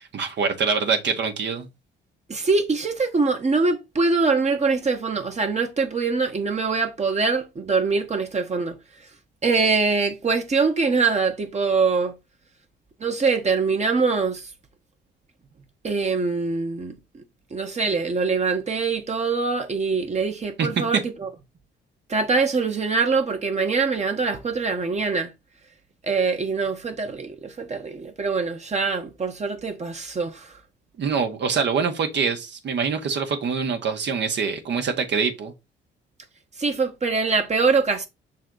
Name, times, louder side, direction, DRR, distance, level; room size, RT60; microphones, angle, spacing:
voice 1, 0.0-1.7 20.6-20.7 31.0-35.5, right 5 dB, 60° right, 1.4 m, -24 dB
voice 2, 2.3-8.8 9.4-12.2 13.0-14.5 15.8-17.2 17.5-21.3 22.1-25.3 26.0-30.5 36.6-38.1, right 4 dB, 35° right, 1.2 m, -23 dB
6.1 x 4.1 x 3.9 m
cardioid pair, 90°, 20 cm